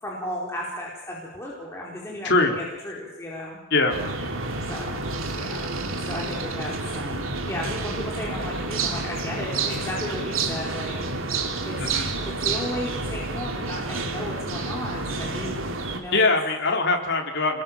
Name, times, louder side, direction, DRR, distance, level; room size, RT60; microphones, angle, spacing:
voice 1, 0.0-3.6 4.7-5.0 5.3-5.7 6.1-11.8 12.1-15.6 15.9-16.2, left 1 dB, 10° left, -4 dB, 4.5 m, -34 dB
voice 2, 2.2-2.5 3.7-4.0 11.8-12.1 16.1-17.6, left 3 dB, 55° left, 2 dB, 4.0 m, -22 dB
sound 1, 3.9-16.0, right 3 dB, 70° right, 3.1 m, -29 dB
27.5 x 21.5 x 7.6 m, 0.93 s
head